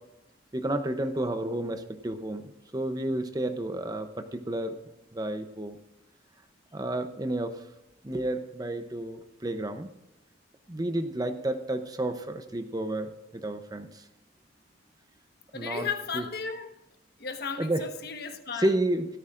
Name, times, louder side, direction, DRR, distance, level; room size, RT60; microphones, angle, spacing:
voice 1, 0.5-2.4 2.7-4.8 5.1-5.8 6.7-7.6 8.0-9.9 10.7-13.9 15.5-15.9 16.1-16.2 17.6-17.8 18.6-19.1, right 1 dB, 20° right, 8 dB, 0.7 m, -31 dB
voice 2, 15.5-16.7 17.2-18.8, left 6 dB, 55° left, 6 dB, 1.3 m, -35 dB
17.0 x 13.5 x 2.5 m, 0.91 s
head